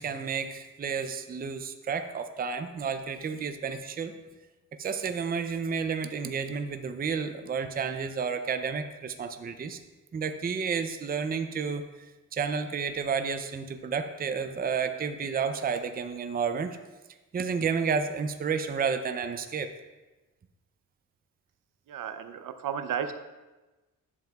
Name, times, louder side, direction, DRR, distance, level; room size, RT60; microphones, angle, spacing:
voice 1, 0.0-4.1 4.8-9.8 10.1-11.8 12.3-16.8 17.3-19.7, right 6 dB, 30° right, 8 dB, 0.4 m, -31 dB
voice 2, 21.9-23.2, right 8 dB, 70° right, 9 dB, 0.6 m, -33 dB
11.0 x 6.9 x 2.3 m, 1.1 s
cardioid pair, 110°, 34 cm